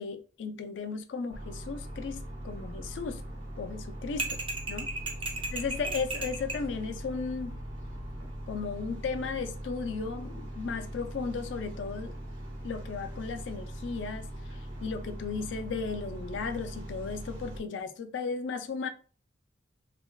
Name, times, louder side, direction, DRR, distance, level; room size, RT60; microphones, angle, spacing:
voice 1, 0.0-3.2 3.6-4.3 4.7-4.9 5.5-7.6 8.5-12.2 12.6-14.3 14.8-18.9, left 5 dB, 75° left, 0.4 m, -35 dB
sound 1, 1.3-17.6, right 1 dB, 85° right, 1.5 m, -41 dB
sound 2, 4.2-6.7, right 3 dB, 30° right, 0.4 m, -35 dB
3.3 x 2.3 x 2.2 m
head